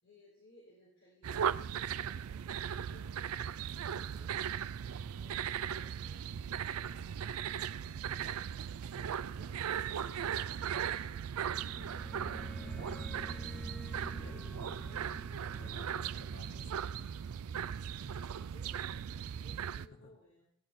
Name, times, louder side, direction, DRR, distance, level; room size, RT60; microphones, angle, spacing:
voice 1, 0.0-3.3 3.6-4.4 4.8-12.0 12.3-13.6 13.8-15.2 17.9-20.5, left 1 dB, 50° left, -6 dB, 3.8 m, -62 dB
sound 1, 1.2-19.9, right 8 dB, 80° right, 0.4 m, -38 dB
sound 2, 11.2-17.8, equal, 5° left, 0.5 m, -49 dB
voice 2, 12.6-13.0 13.7-14.4 15.5-16.9 19.7-20.1, left 1 dB, 85° left, 2 dB, 1.9 m, -56 dB
15.5 x 9.5 x 4.2 m, 0.71 s
head